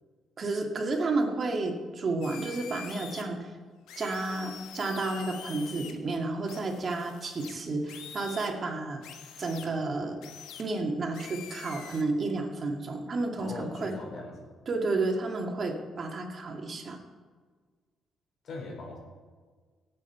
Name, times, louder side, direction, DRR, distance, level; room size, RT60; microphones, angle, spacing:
voice 1, 0.4-3.5 4.0-9.0 9.4-10.2 10.6-13.9 14.7-17.0, right 3 dB, 45° right, 2 dB, 2.3 m, -31 dB
sound 1, 2.2-3.2 3.9-5.9 6.4-8.5 9.0-9.7 10.2-10.6 11.1-12.0, left 8 dB, 90° left, 1.3 m, -45 dB
voice 2, 13.4-14.5 18.4-19.0, left 2 dB, 60° left, -1 dB, 4.6 m, -40 dB
18.0 x 7.9 x 4.6 m, 1.5 s
cardioid pair, 90°, 0 cm